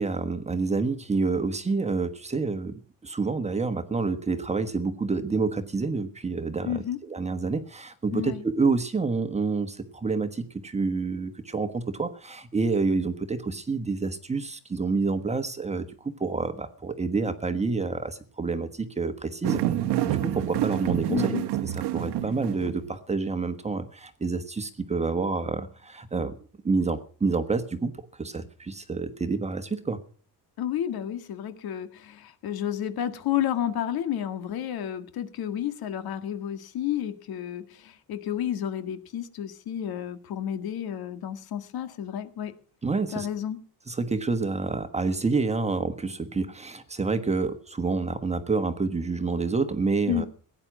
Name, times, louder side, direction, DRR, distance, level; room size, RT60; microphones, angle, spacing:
voice 1, 0.0-19.6 20.0-21.4 21.6-26.4 26.6-30.0 42.8-43.3 43.9-50.3, right 4 dB, 15° right, 9 dB, 1.3 m, -28 dB
voice 2, 6.7-7.0 8.1-8.4 21.1-21.5 30.6-42.6 43.1-43.6 50.1-50.3, left 10 dB, 65° left, 9 dB, 1.9 m, -31 dB
sound 1, 19.4-23.0, right 12 dB, 85° right, 1.3 m, -28 dB
17.0 x 9.9 x 6.1 m, 0.43 s
cardioid pair, 140°, 39 cm